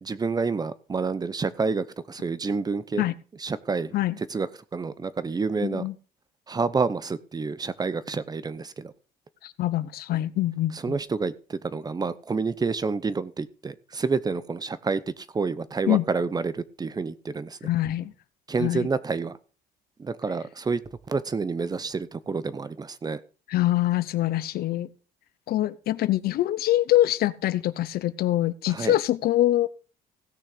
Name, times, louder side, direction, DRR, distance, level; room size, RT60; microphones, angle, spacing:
voice 1, 0.0-3.0 3.4-5.8 6.5-8.9 10.7-17.7 18.5-19.4 20.0-20.8 21.1-23.2 28.7-29.0, right 4 dB, 25° right, 0.8 m, -29 dB
voice 2, 5.6-5.9 9.4-10.9 15.9-16.0 17.6-18.1 18.6-18.9 23.5-24.9 25.5-29.7, left 14 dB, 65° left, 0.8 m, -24 dB
16.5 x 6.4 x 4.9 m
cardioid pair, 110°, 17 cm